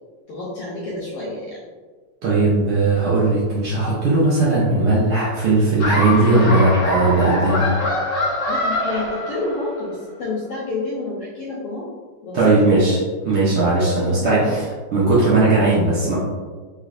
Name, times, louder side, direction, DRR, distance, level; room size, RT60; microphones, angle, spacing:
voice 1, 0.3-1.6 8.5-11.9 12.2-12.7 13.8-14.5 15.7-15.8, left 2 dB, 80° left, -7 dB, 1.4 m, -29 dB
voice 2, 2.2-7.7 12.3-13.0 13.2-14.6 14.9-16.1, right 2 dB, 75° right, -8 dB, 1.3 m, -17 dB
Laughter, 5.8-9.8, left 1 dB, 50° left, 1.3 m, -23 dB
4.4 x 3.2 x 2.5 m, 1.4 s
omnidirectional pair, 3.5 m